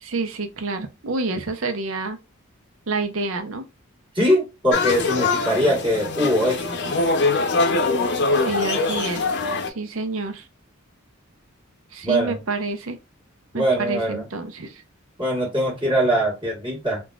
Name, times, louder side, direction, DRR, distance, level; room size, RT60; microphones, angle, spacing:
voice 1, 0.0-2.2 2.9-3.6 8.3-9.4 9.7-10.5 11.9-13.0 13.5-14.8, right 3 dB, 70° right, 0.7 m, -28 dB
voice 2, 4.1-6.8 12.0-12.4 13.5-14.2 15.2-17.0, equal, 25° right, 1.5 m, -22 dB
sound 1, 4.7-9.7, left 3 dB, 55° left, 0.6 m, -23 dB
3.8 x 2.4 x 2.3 m
head